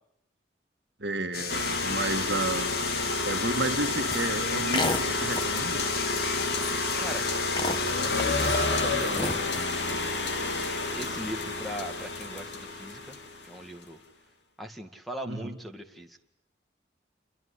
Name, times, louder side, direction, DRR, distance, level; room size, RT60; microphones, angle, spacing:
voice 1, 1.0-2.7 3.2-5.9 15.2-15.6, right 2 dB, 70° right, 6 dB, 1.7 m, -32 dB
sound 1, 1.3-8.7, left 7 dB, 55° left, 1.6 m, -35 dB
sound 2, 1.5-13.5, left 3 dB, 75° left, 2.8 m, -30 dB
sound 3, 4.1-4.3 4.7-5.0 5.3-5.6 6.1-6.2 6.4-6.9 7.6-8.6 9.0-9.7, left 2 dB, 25° left, 1.5 m, -31 dB
voice 2, 8.2-9.5 10.8-13.2 13.4-14.0 14.6-16.2, right 1 dB, ahead, 5 dB, 2.2 m, -39 dB
28.5 x 23.5 x 8.6 m, 0.83 s
head